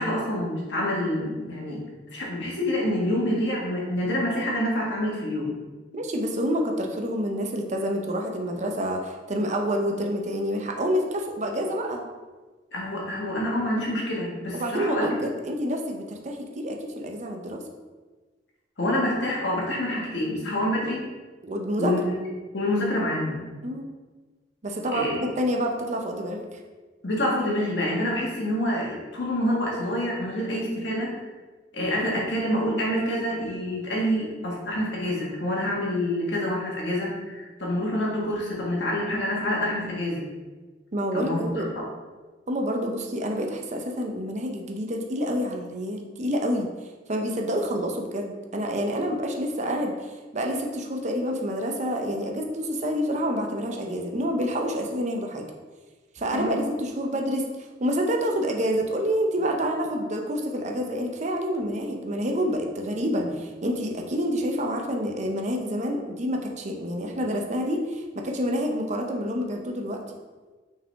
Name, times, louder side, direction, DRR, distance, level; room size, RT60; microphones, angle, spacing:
voice 1, 0.0-1.8 2.1-5.5 12.7-15.1 18.8-21.0 21.8-22.2 22.5-23.4 24.9-25.2 27.0-31.1 31.7-40.3 41.1-41.8 56.3-56.6, left 1 dB, 75° left, -3 dB, 1.7 m, -27 dB
voice 2, 5.9-12.0 14.5-17.6 21.4-22.0 23.6-23.9 24.6-26.4 40.9-41.7 42.5-46.7 47.1-55.5 56.1-57.5 57.8-70.0, equal, 40° right, 2 dB, 0.8 m, -28 dB
6.0 x 4.7 x 3.5 m, 1.3 s
head